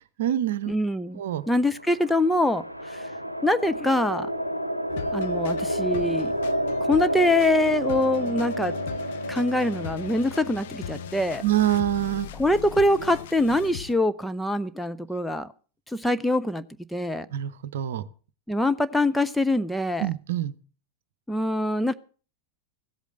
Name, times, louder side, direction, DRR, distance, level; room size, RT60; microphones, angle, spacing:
voice 1, 0.0-0.7 1.2-1.4 11.4-12.3 17.3-18.0 20.0-20.5, right 12 dB, 60° right, 0.8 m, -26 dB
voice 2, 0.7-1.2 1.5-3.1 3.4-4.3 5.1-6.3 6.9-8.7 9.3-11.4 12.4-15.5 15.9-16.6 16.9-17.3 18.5-20.1 21.3-21.9, left 1 dB, 5° left, 0.6 m, -24 dB
sound 1, 1.6-12.0, equal, 90° right, 0.8 m, -30 dB
sound 2, 4.9-13.9, left 10 dB, 55° left, 0.7 m, -39 dB
15.5 x 8.3 x 7.5 m
figure-of-eight pair, 90°, 0 cm